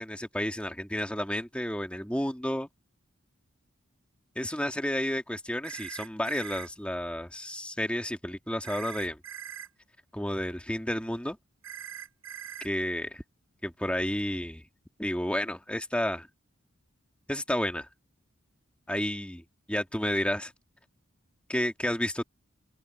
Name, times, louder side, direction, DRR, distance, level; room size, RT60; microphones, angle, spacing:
voice 1, 0.0-2.7 4.4-9.2 10.1-11.4 12.6-13.2 13.6-14.6 15.0-16.3 17.3-17.9 18.9-20.5 21.5-22.2, left 1 dB, 5° left, 2.0 m, -31 dB
sound 1, 5.6-6.7 8.6-9.7 11.6-12.7, right 9 dB, 80° right, 7.8 m, -41 dB
open air
head